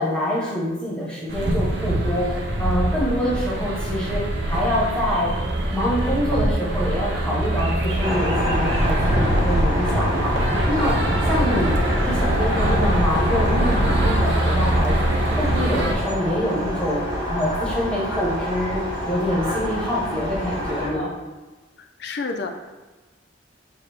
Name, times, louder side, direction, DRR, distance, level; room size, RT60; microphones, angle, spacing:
voice 1, 0.0-5.3 5.7-11.0 11.3-11.8 12.0-17.0 17.3-18.8 19.1-21.1, equal, 5° left, -6 dB, 1.0 m, -25 dB
sound 1, 1.3-15.9, right 1 dB, 60° right, 0.6 m, -23 dB
sound 2, 8.0-20.9, equal, 20° right, 1.3 m, -26 dB
voice 2, 21.8-22.5, left 3 dB, 60° left, 4 dB, 0.5 m, -30 dB
6.4 x 2.3 x 3.4 m, 1.2 s
head